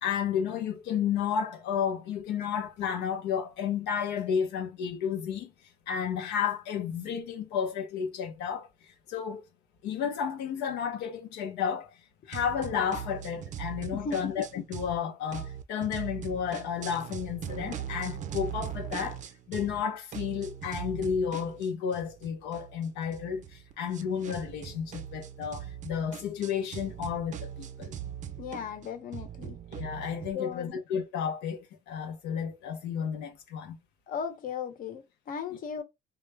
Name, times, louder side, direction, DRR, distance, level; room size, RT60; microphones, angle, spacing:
voice 1, 0.0-5.5 5.9-8.7 9.1-9.4 9.8-11.9 12.3-19.2 19.5-28.0 29.7-31.6 31.9-33.8, left 7 dB, 85° left, 0.7 m, -32 dB
sound 1, 12.3-15.0 15.3-19.8 20.1-30.3, right 10 dB, 45° right, 0.5 m, -41 dB
voice 2, 28.4-29.6 30.3-30.8 34.1-35.8, left 6 dB, 55° left, 0.9 m, -36 dB
3.8 x 2.3 x 3.3 m
cardioid pair, 110°, 17 cm